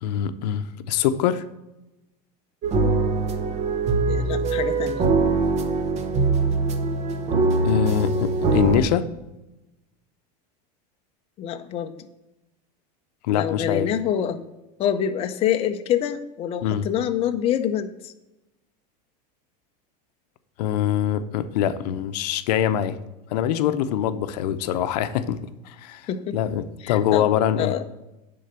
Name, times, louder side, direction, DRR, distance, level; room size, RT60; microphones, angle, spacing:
voice 1, 0.0-1.4 7.6-9.1 13.2-13.9 16.6-16.8 20.6-23.0 23.3-25.4 25.6-27.7, left 10 dB, 75° left, 11 dB, 0.7 m, -24 dB
sound 1, 2.6-8.8, right 3 dB, 30° right, 0.9 m, -22 dB
voice 2, 4.1-5.1 11.4-11.9 13.3-14.4 14.8-18.1 26.1-26.4 26.8-27.3 27.6-27.8, left 9 dB, 30° left, 6 dB, 0.6 m, -26 dB
10.0 x 3.9 x 6.7 m, 0.98 s
supercardioid pair, 145°, 21 cm